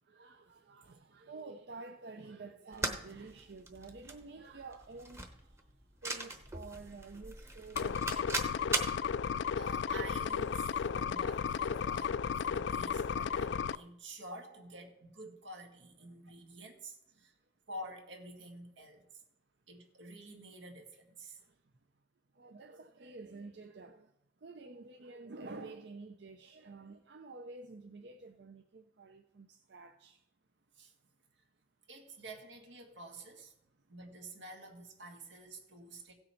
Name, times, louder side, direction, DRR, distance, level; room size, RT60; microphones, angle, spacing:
voice 1, 0.0-8.3 16.0-16.2 17.2-17.3 21.4-21.6 22.3-24.1 24.4-30.3, right 3 dB, 65° right, 0.6 m, -50 dB
sound 1, 2.7-9.0, right 2 dB, 15° right, 0.9 m, -39 dB
sound 2, 7.7-13.8, left 7 dB, 75° left, 0.3 m, -34 dB
voice 2, 9.6-17.3 17.7-19.1 19.7-21.4 30.7-30.9 31.9-33.5 33.9-36.1, right 1 dB, 85° right, 1.9 m, -49 dB
16.0 x 6.7 x 4.5 m
head